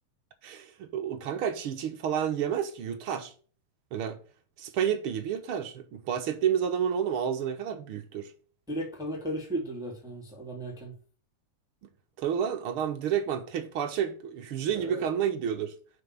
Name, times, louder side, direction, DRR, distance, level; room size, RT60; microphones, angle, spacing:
voice 1, 0.4-3.3 3.9-4.2 4.6-8.3 12.2-15.7, right 8 dB, 60° right, 1.5 m, -30 dB
voice 2, 8.7-10.9 14.6-15.1, right 1 dB, ahead, 2.0 m, -35 dB
5.9 x 5.8 x 6.8 m
omnidirectional pair, 3.5 m